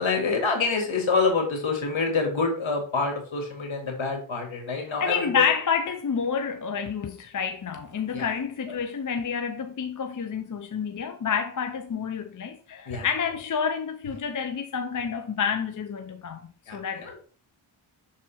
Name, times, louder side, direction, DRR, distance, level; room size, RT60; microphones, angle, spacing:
voice 1, 0.0-5.5 8.1-8.3 8.7-8.8 12.9-13.1 16.7-17.2, left 4 dB, 70° left, 2.2 m, -27 dB
voice 2, 5.0-17.2, left 6 dB, 40° left, 0.7 m, -29 dB
6.2 x 4.1 x 4.3 m
cardioid pair, 60°, 50 cm